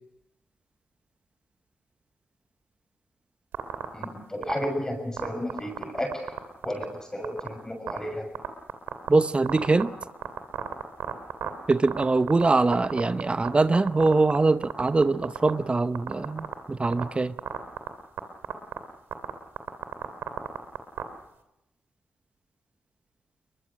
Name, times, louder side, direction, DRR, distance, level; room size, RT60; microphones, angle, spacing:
sound 1, 3.5-4.0 4.4-4.6 5.2-6.4 6.6-6.8 7.2-7.5 7.9-8.0 8.3-9.1 9.5-12.5 12.7-13.5 13.7-14.4 14.6-15.5 15.9-16.5 16.8-17.0 17.4-17.9 18.2-18.3 18.4-18.8 19.1-19.3 19.6-21.0, right 9 dB, 85° right, 2.3 m, -31 dB
voice 1, 3.9-6.3 6.6-8.3 13.3-13.4, left 1 dB, 15° left, 3 dB, 6.6 m, -33 dB
voice 2, 9.1-9.9 11.7-17.3, right 3 dB, 30° right, 13 dB, 0.8 m, -23 dB
22.5 x 21.0 x 6.3 m, 0.90 s
cardioid pair, 55°, 4 cm